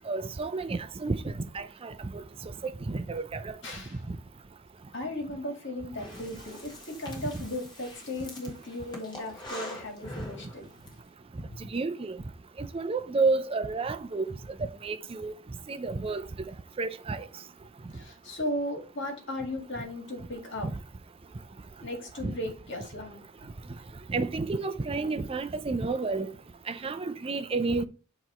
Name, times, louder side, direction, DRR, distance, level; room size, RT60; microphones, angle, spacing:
voice 1, 0.1-2.5 2.9-3.6 11.6-12.2 12.6-14.3 14.8-15.4 15.7-16.2 16.8-17.3 22.2-22.3 24.1-26.3 26.7-27.9, right 3 dB, 25° right, 0.4 m, -30 dB
voice 2, 3.6-4.0 4.9-10.7 11.4-11.5 17.9-20.7 21.8-23.2, left 1 dB, 60° left, 1.9 m, -36 dB
Breathing, 6.0-10.9, left 1 dB, 20° left, 1.6 m, -44 dB
8.1 x 3.1 x 4.3 m
head